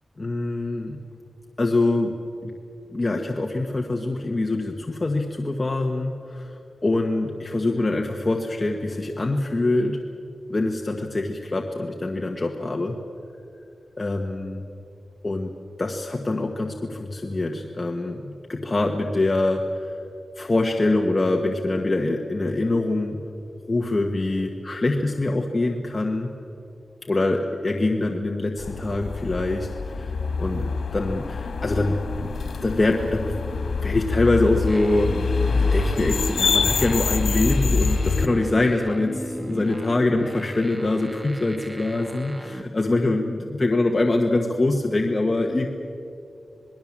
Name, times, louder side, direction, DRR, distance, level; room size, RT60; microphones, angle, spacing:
voice 1, 0.2-1.0 1.6-2.1 2.4-2.5 2.9-10.0 10.5-12.9 14.0-14.6 15.2-15.5 15.8-20.0 20.4-23.2 23.7-26.3 27.1-30.1 30.4-32.3 32.6-33.4 33.8-45.7, left 2 dB, 25° left, 2 dB, 1.3 m, -24 dB
sound 1, 28.6-38.3, left 4 dB, 90° left, 1.7 m, -25 dB
sound 2, 34.6-42.6, equal, 10° right, 1.3 m, -36 dB
27.0 x 20.0 x 7.4 m, 2.6 s
wide cardioid pair, 165°, 0 cm